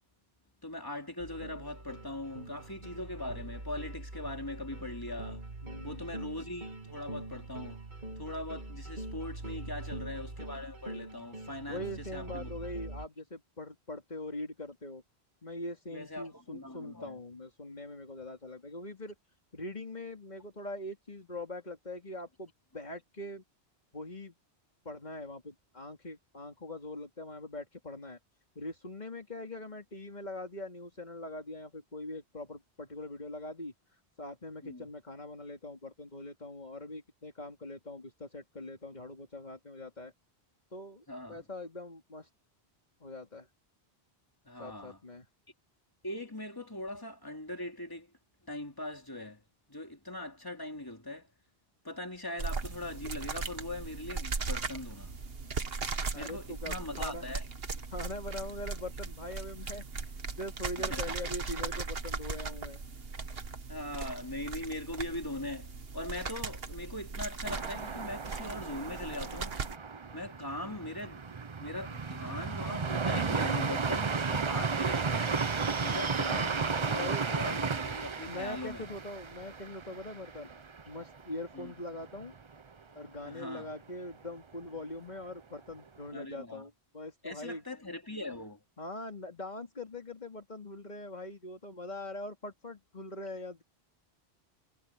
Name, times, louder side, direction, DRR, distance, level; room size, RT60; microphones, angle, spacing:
voice 1, 0.6-5.5 5.8-7.8 8.2-12.5 15.9-17.2 34.6-34.9 41.1-41.4 44.5-45.0 46.0-48.1 48.5-49.4 49.7-51.3 51.8-55.1 56.1-57.4 60.8-61.1 63.7-69.6 70.1-71.2 71.6-75.4 75.8-78.8 81.5-81.7 83.2-83.7 86.1-86.6 87.2-88.6, left 1 dB, 20° left, 3.5 m, -41 dB
sound 1, 1.2-13.1, right 2 dB, 45° right, 2.5 m, -43 dB
voice 2, 5.6-6.1 9.6-10.2 11.7-15.0 15.4-19.1 19.5-23.4 23.9-24.3 24.8-28.2 28.5-40.1 40.7-42.3 43.0-43.5 44.6-45.3 56.1-57.2 57.9-62.8 70.4-70.7 76.9-77.3 78.2-80.5 80.9-82.3 82.9-87.6 88.8-93.6, left 1 dB, 40° left, 3.1 m, -42 dB
sound 2, 52.4-69.8, right 4 dB, 65° right, 1.7 m, -38 dB
sound 3, 67.4-81.2 81.5-81.6 82.0-82.5, right 5 dB, 30° right, 0.7 m, -34 dB
omnidirectional pair, 1.1 m